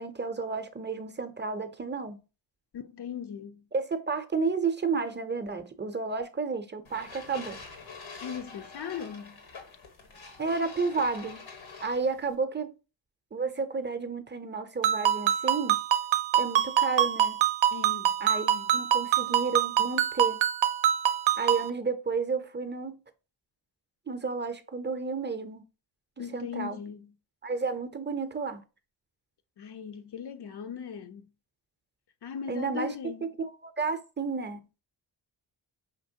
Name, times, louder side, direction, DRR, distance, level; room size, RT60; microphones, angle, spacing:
voice 1, 0.0-2.2 3.7-7.6 10.4-11.4 11.8-12.7 13.3-15.8 16.3-17.4 18.2-20.4 21.4-23.0 24.1-25.6 26.3-26.8 27.4-28.6 32.5-33.0 33.4-34.6, right 4 dB, 25° right, 0.5 m, -31 dB
voice 2, 2.7-3.6 8.2-9.4 17.7-18.1 18.4-18.7 26.2-27.1 29.6-31.3 32.2-33.3, left 7 dB, 60° left, 0.6 m, -39 dB
sound 1, 6.8-12.3, left 4 dB, 85° left, 1.2 m, -46 dB
Ringtone, 14.8-21.7, right 10 dB, 75° right, 0.5 m, -25 dB
5.2 x 2.9 x 2.7 m
cardioid pair, 70°, 47 cm